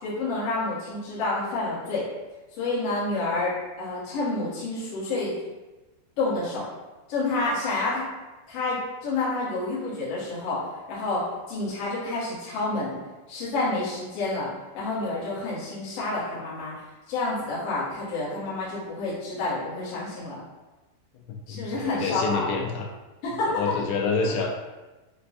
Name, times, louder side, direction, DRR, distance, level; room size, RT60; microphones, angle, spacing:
voice 1, 0.0-2.1 2.6-5.3 6.2-6.6 7.1-8.0 8.5-10.6 10.9-11.2 11.5-13.0 13.3-14.5 14.7-16.7 17.1-20.4 21.5-22.5 23.2-23.5, left 2 dB, 70° left, -9 dB, 1.4 m, -29 dB
voice 2, 21.1-22.9 23.5-24.5, left 4 dB, 85° left, 1 dB, 2.7 m, -28 dB
6.6 x 2.2 x 2.6 m, 1.1 s
omnidirectional pair, 4.9 m